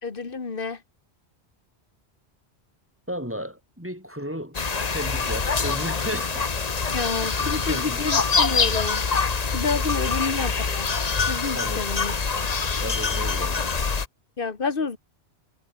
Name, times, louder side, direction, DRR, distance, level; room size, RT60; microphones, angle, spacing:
voice 1, 0.0-0.8 6.9-9.1 9.5-11.0 11.3-12.1 14.4-15.0, left 4 dB, 55° left, 2.0 m, -29 dB
voice 2, 3.1-4.6 4.9-6.5 7.2-8.2 9.7-10.6 11.5-11.9 12.8-14.0, equal, 10° right, 4.5 m, -35 dB
sound 1, 4.5-14.1, left 4 dB, 40° left, 1.2 m, -25 dB
omnidirectional pair, 1.1 m